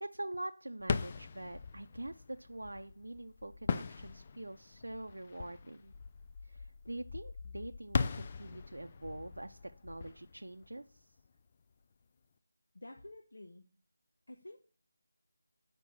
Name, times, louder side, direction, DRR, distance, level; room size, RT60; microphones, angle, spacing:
voice 1, 0.0-5.9 6.5-11.0, right 1 dB, 80° right, 6 dB, 0.5 m, -45 dB
sound 1, 0.8-11.4, left 5 dB, 30° left, 0.4 m, -40 dB
voice 2, 12.7-13.7 14.3-14.6, left 1 dB, 70° left, 4 dB, 1.0 m, -50 dB
7.5 x 5.2 x 6.1 m, 0.41 s
figure-of-eight pair, 165°, 0 cm